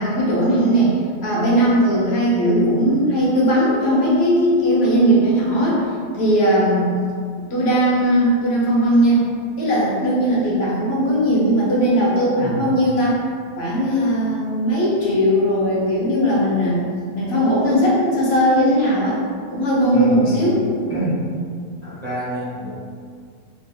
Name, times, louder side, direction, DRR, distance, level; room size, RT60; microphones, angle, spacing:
voice 1, 0.0-5.8 6.1-7.0 7.5-9.2 9.6-13.2 13.6-16.8 17.1-19.2 19.5-20.6, equal, 50° left, -6 dB, 0.9 m, -18 dB
voice 2, 19.9-20.5 20.9-21.2 21.8-22.7, right 1 dB, 50° right, -12 dB, 0.4 m, -26 dB
3.6 x 2.3 x 2.7 m, 2.1 s
omnidirectional pair, 1.6 m